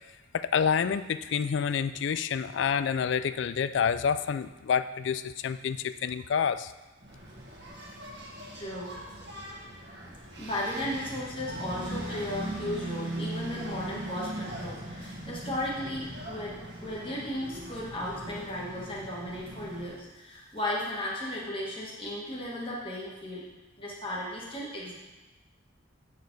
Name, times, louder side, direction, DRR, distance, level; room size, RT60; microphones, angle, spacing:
voice 1, 0.3-6.7, left 7 dB, 65° left, 13 dB, 0.3 m, -28 dB
Engine, 7.0-20.0, right 1 dB, 60° right, 1.5 m, -39 dB
voice 2, 8.5-9.0 10.0-23.5 23.8-24.9, left 1 dB, 25° left, -4 dB, 1.5 m, -35 dB
8.3 x 5.0 x 4.6 m, 1.1 s
head